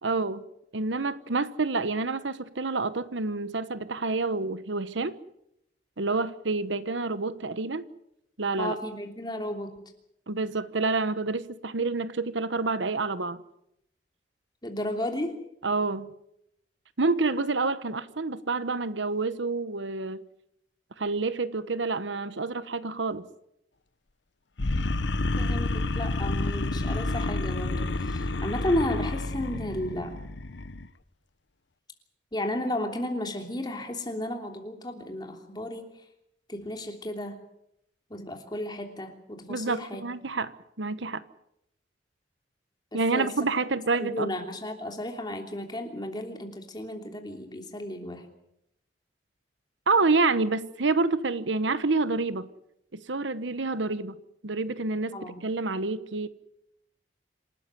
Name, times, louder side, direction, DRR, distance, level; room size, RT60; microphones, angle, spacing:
voice 1, 0.0-0.4 0.7-5.2 6.0-7.9 8.4-8.8 10.3-13.4 15.6-16.1 17.0-20.3 21.0-23.2 39.5-41.2 42.9-44.3 49.9-52.5 52.9-54.2 54.4-56.3, right 3 dB, 80° right, 1.1 m, -28 dB
voice 2, 8.6-9.8 14.6-15.4 25.4-30.2 32.3-35.9 36.5-37.4 38.1-40.0 42.9-43.3 44.0-48.3 55.1-55.4, left 1 dB, 25° left, 3.2 m, -33 dB
sound 1, 24.6-30.9, left 2 dB, 75° left, 1.0 m, -29 dB
27.5 x 13.0 x 9.6 m
head